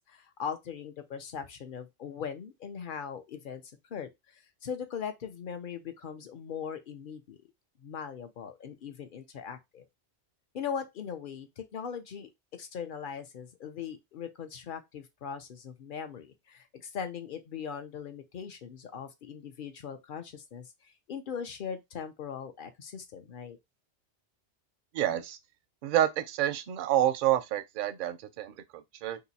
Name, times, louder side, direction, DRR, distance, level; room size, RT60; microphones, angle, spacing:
voice 1, 0.0-3.6 3.9-7.4 7.8-9.9 10.5-23.6, left 7 dB, 55° left, 0.7 m, -40 dB
voice 2, 24.9-25.4 25.8-29.2, right 12 dB, 60° right, 0.6 m, -28 dB
2.8 x 2.5 x 4.0 m
omnidirectional pair, 1.2 m